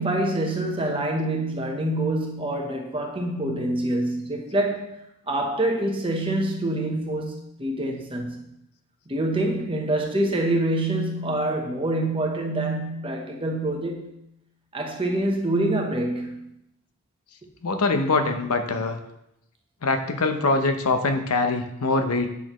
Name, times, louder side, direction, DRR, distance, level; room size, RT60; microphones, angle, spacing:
voice 1, 0.0-8.4 9.1-14.1 14.7-16.5, right 1 dB, 25° right, 0.9 m, -26 dB
voice 2, 17.6-19.0 19.8-22.3, left 3 dB, 85° left, 0.7 m, -23 dB
8.3 x 6.3 x 3.1 m
head